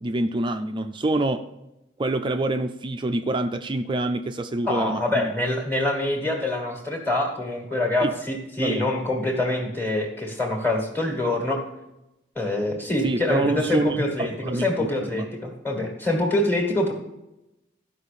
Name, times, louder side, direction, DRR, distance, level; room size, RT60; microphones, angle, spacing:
voice 1, 0.0-1.4 2.0-5.3 8.0-8.1 8.6-8.9 13.0-15.3, right 2 dB, 25° right, 7 dB, 0.4 m, -26 dB
voice 2, 4.6-11.6 12.3-16.9, left 1 dB, 10° left, 0 dB, 1.6 m, -25 dB
12.5 x 5.7 x 6.8 m, 0.92 s
head